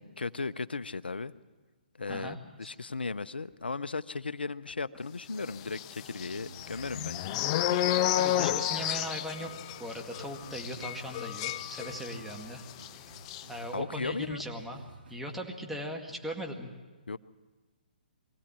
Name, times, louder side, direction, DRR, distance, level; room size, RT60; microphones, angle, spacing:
voice 1, 0.0-1.3 2.0-7.3 13.7-14.4 17.1-17.2, left 4 dB, 90° left, 16 dB, 0.6 m, -36 dB
sound 1, 5.7-12.4 12.7-12.9 13.2-13.4, left 12 dB, 35° left, 0.6 m, -31 dB
sound 2, 6.0-15.4, right 3 dB, 75° right, 1.9 m, -52 dB
voice 2, 8.1-9.5 9.8-12.6 13.5-14.8 15.1-16.7, equal, ahead, 1 dB, 2.0 m, -39 dB
23.0 x 16.0 x 8.7 m, 1.3 s
hypercardioid pair, 140°, 5 cm